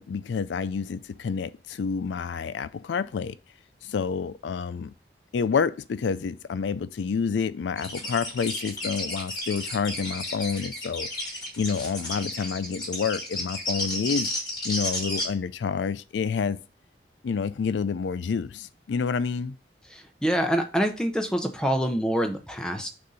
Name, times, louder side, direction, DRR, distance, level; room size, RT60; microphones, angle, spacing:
voice 1, 0.0-3.4 3.8-4.9 5.3-11.1 11.6-14.3 14.6-16.6 17.2-19.5, left 6 dB, 85° left, 0.4 m, -28 dB
sound 1, 7.8-15.2, left 1 dB, 20° left, 2.0 m, -32 dB
voice 2, 19.9-22.9, equal, 5° left, 0.6 m, -26 dB
6.5 x 2.6 x 5.5 m
head